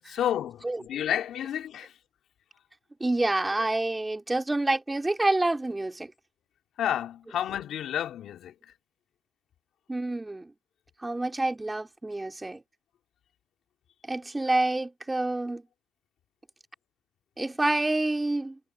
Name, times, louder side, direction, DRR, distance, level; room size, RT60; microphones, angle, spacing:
voice 1, 0.1-1.9 6.8-8.5, left 10 dB, 75° left, 3.5 m, -30 dB
voice 2, 3.0-6.1 9.9-10.5 11.0-12.6 14.1-15.6 17.4-18.6, right 2 dB, 15° right, 3.6 m, -27 dB
cardioid pair, 90°, 0 cm